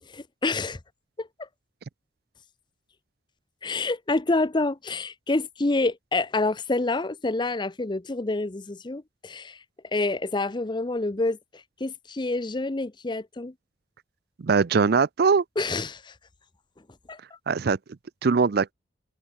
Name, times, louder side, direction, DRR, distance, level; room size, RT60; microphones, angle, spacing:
voice 1, 0.1-0.8 1.2-1.5 3.6-9.6 9.9-11.4 11.8-13.5 15.6-16.1 17.1-17.2, left 2 dB, 25° left, 0.6 m, -27 dB
voice 2, 14.4-15.4 17.5-17.8 18.2-18.7, right 5 dB, 60° right, 0.5 m, -21 dB
head